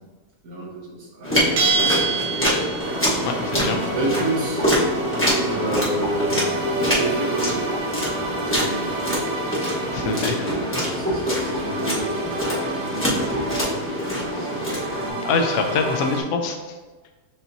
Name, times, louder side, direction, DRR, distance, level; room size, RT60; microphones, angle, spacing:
voice 1, 0.4-2.5 3.9-4.7 5.1-7.7 8.0-9.6 10.0-14.7 15.0-15.3, right 2 dB, 70° right, -3 dB, 1.5 m, -30 dB
sound 1, 1.2-15.1, equal, 10° left, 0.8 m, -25 dB
Bell, 1.6-3.1, right 5 dB, 85° right, 1.3 m, -23 dB
sound 2, 2.8-16.2, right 1 dB, 55° right, 0.7 m, -30 dB
voice 2, 3.3-3.8 9.9-10.5 15.2-16.6, left 4 dB, 70° left, 4 dB, 1.0 m, -24 dB
7.1 x 2.8 x 2.6 m, 1.3 s
omnidirectional pair, 1.7 m